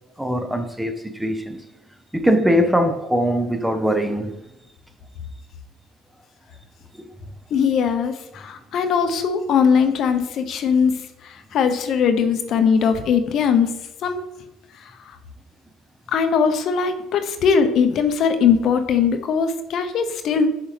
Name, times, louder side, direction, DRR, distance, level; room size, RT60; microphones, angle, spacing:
voice 1, 0.2-1.6 2.1-4.4 7.0-7.1, equal, 5° right, 0.6 m, -21 dB
voice 2, 7.5-10.9 11.5-13.7 14.0-14.2 16.1-20.5, left 6 dB, 55° left, 0.7 m, -20 dB
6.4 x 6.1 x 3.2 m
supercardioid pair, 80°, 0 cm